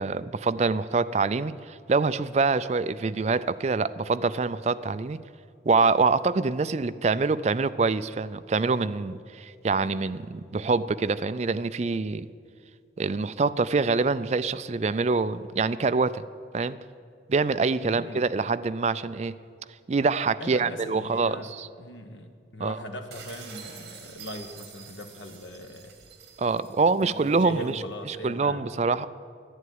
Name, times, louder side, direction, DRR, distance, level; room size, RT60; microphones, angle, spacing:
voice 1, 0.0-5.2 5.7-12.3 13.0-16.2 16.5-16.8 17.3-19.4 19.9-21.7 22.6-22.8 26.4-27.8 28.1-29.1, right 4 dB, 35° right, 13 dB, 0.4 m, -25 dB
voice 2, 17.8-18.3 20.4-21.5 21.8-26.0 27.0-28.7, equal, 85° left, 6 dB, 1.3 m, -40 dB
sound 1, 23.1-27.8, right 7 dB, 60° right, 2.0 m, -47 dB
11.5 x 10.5 x 9.4 m, 2.2 s
head